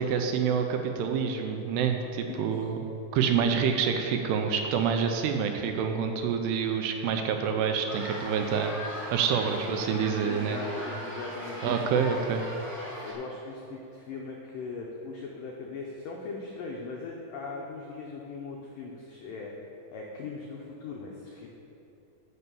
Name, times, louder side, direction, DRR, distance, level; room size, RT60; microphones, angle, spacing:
voice 1, 0.0-2.8 3.1-8.8 9.1-10.6 11.6-12.4, right 7 dB, 80° right, 5 dB, 2.6 m, -27 dB
sound 1, 7.9-13.1, equal, 30° right, 0.3 m, -39 dB
voice 2, 9.5-9.8 10.2-12.1 13.0-19.5 19.9-21.5, left 4 dB, 90° left, -1 dB, 1.9 m, -39 dB
11.0 x 5.5 x 6.9 m, 3.0 s
omnidirectional pair, 5.0 m